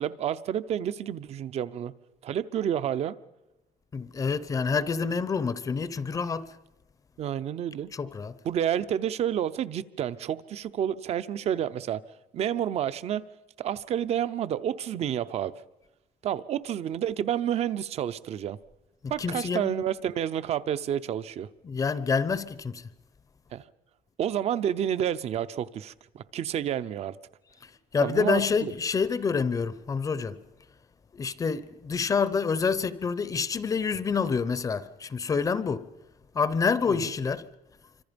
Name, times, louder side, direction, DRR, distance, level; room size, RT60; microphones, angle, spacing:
voice 1, 0.0-1.9 2.2-3.2 7.2-7.9 8.4-12.0 12.3-13.3 13.6-15.5 16.2-18.6 19.1-21.5 23.5-23.6 24.2-27.2 28.0-28.7 36.9-37.1, right 10 dB, 45° right, 0.7 m, -29 dB
voice 2, 3.9-6.5 7.9-8.4 19.0-19.8 21.6-22.8 27.9-30.4 31.1-35.9 36.3-37.5, left 5 dB, 25° left, 0.7 m, -27 dB
27.0 x 25.5 x 5.2 m
cardioid pair, 160°, 15 cm